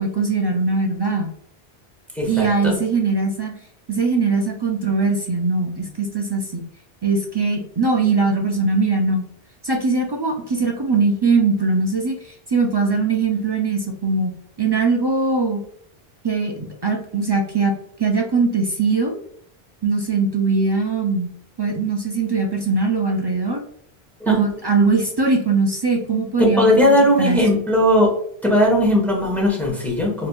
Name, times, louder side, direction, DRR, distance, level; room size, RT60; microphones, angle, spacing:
voice 1, 0.0-1.3 2.3-3.5 3.9-6.6 7.0-9.2 9.6-14.3 14.6-15.6 16.2-17.7 18.0-19.2 19.8-21.3 21.6-23.6 24.3-27.4, right 4 dB, 45° right, 2 dB, 0.3 m, -21 dB
voice 2, 2.2-2.7 24.2-24.4 26.4-28.1 28.4-30.3, left 1 dB, ahead, -3 dB, 1.1 m, -18 dB
4.2 x 3.0 x 2.2 m, 0.65 s
omnidirectional pair, 1.0 m